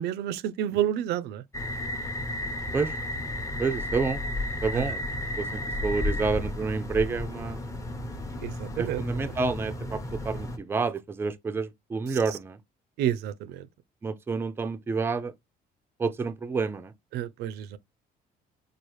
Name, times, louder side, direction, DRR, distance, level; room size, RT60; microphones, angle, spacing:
voice 1, 0.0-1.4 4.7-4.9 8.4-9.3 12.1-12.2 13.0-13.7 17.1-17.8, right 11 dB, 80° right, 0.4 m, -30 dB
sound 1, 1.5-10.6, left 1 dB, 20° left, 0.7 m, -33 dB
voice 2, 3.6-4.2 4.6-5.1 5.4-7.6 8.8-12.6 14.0-15.3 16.0-16.9, right 4 dB, 15° right, 0.4 m, -29 dB
4.7 x 2.4 x 3.0 m
cardioid pair, 135°, 17 cm